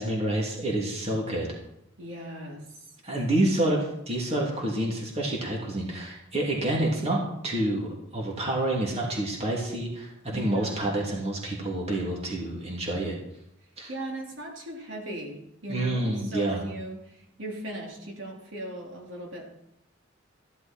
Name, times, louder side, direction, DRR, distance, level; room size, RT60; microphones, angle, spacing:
voice 1, 0.0-1.5 3.0-13.2 13.8-13.9 15.7-16.6, right 1 dB, 30° right, -2 dB, 2.9 m, -28 dB
voice 2, 2.0-2.6 10.3-10.9 13.9-19.5, right 1 dB, 70° right, 0 dB, 3.1 m, -38 dB
14.5 x 12.0 x 4.5 m, 0.79 s
head